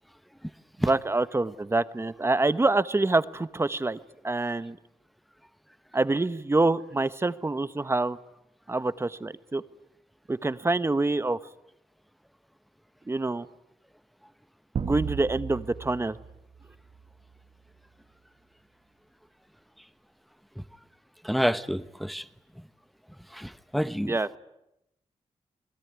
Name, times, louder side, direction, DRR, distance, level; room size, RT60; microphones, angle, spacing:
voice 1, 0.8-4.0 4.2-4.8 5.9-8.2 8.7-9.6 10.3-11.4 13.1-13.5 14.8-16.2 24.1-24.4, right 2 dB, 20° right, 1.1 m, -26 dB
sound 1, 14.8-17.3, right 6 dB, 70° right, 1.8 m, -35 dB
voice 2, 21.2-22.3 23.3-24.4, equal, ahead, 1.0 m, -28 dB
28.0 x 21.0 x 9.6 m
wide cardioid pair, 100°, 12 cm